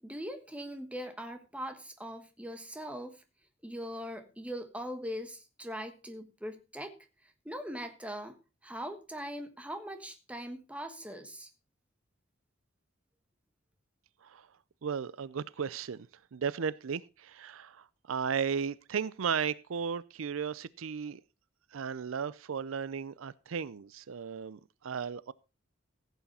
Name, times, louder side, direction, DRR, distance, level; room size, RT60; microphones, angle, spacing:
voice 1, 0.0-3.2 3.6-6.9 7.4-8.4 8.6-11.5, equal, 5° right, 1.4 m, -41 dB
voice 2, 14.8-16.1 16.3-21.2 21.7-25.3, right 6 dB, 80° right, 0.5 m, -35 dB
15.0 x 8.3 x 4.2 m
head